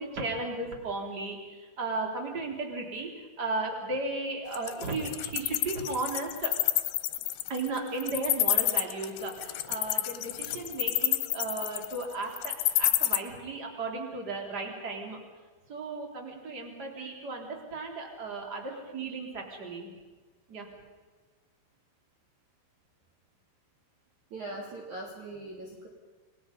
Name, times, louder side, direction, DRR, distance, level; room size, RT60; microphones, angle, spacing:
voice 1, 0.0-1.4 1.8-6.5 7.5-15.2 15.7-19.9 20.5-20.7 25.7-25.8, right 3 dB, 20° right, 1 dB, 3.8 m, -35 dB
Wild animals, 4.5-13.2, left 15 dB, 85° left, 3.4 m, -28 dB
voice 2, 24.3-25.9, right 2 dB, 45° right, -1 dB, 3.5 m, -41 dB
29.5 x 21.0 x 5.5 m, 1.4 s
omnidirectional pair, 5.4 m